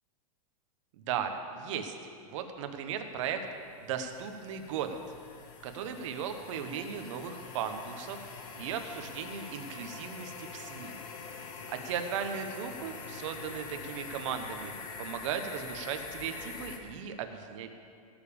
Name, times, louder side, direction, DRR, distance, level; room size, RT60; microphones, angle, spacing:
voice 1, 1.0-1.9 2.2-3.5 3.8-5.0 5.6-8.2 8.6-11.0 11.7-14.7 15.0-17.7, right 7 dB, 55° right, 6 dB, 1.3 m, -37 dB
sound 1, 2.9-16.8, left 5 dB, 60° left, 1.8 m, -45 dB
17.0 x 7.2 x 7.1 m, 2.4 s
supercardioid pair, 150°, 19 cm